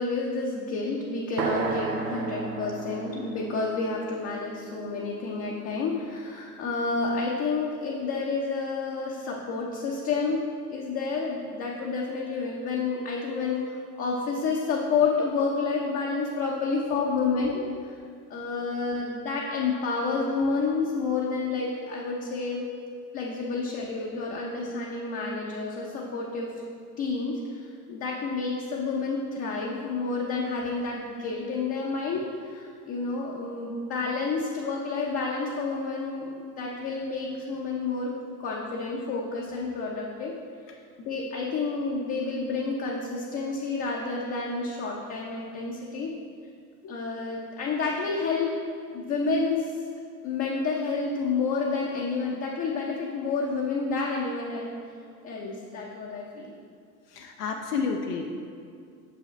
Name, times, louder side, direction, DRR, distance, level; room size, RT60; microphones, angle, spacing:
voice 1, 0.0-10.4 10.7-17.6 18.3-22.7 23.1-26.5 27.0-38.1 38.4-40.3 41.0-46.1 46.8-48.5 48.9-49.7 50.2-54.8 55.2-56.5, left 4 dB, 30° left, -3 dB, 0.7 m, -29 dB
sound 1, 1.4-5.3, right 5 dB, 85° right, 0.7 m, -33 dB
voice 2, 18.6-19.0 21.3-21.4 22.6-22.8 57.1-58.3, left 5 dB, 70° left, 2 dB, 0.7 m, -32 dB
6.3 x 5.5 x 3.2 m, 2.3 s
hypercardioid pair, 90°, 49 cm